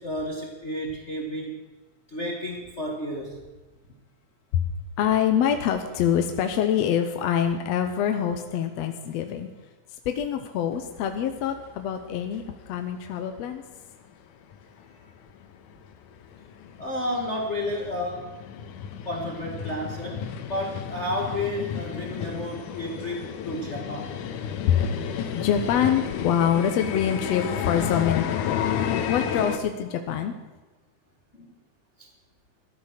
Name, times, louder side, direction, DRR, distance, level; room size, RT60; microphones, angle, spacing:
voice 1, 0.0-1.6 2.1-3.3 16.8-18.3 19.0-24.1 31.4-31.5, left 1 dB, 35° left, 0 dB, 1.2 m, -31 dB
voice 2, 5.0-9.5 10.1-12.4 12.7-13.6 24.7-24.9 25.3-30.3, left 9 dB, 70° left, 6 dB, 1.8 m, -25 dB
sound 1, 10.7-12.8 13.1-13.2 13.7-13.8 14.1-14.2 14.5-29.6, left 8 dB, 85° left, 2.5 m, -32 dB
14.0 x 12.5 x 6.6 m, 1.2 s
omnidirectional pair, 3.6 m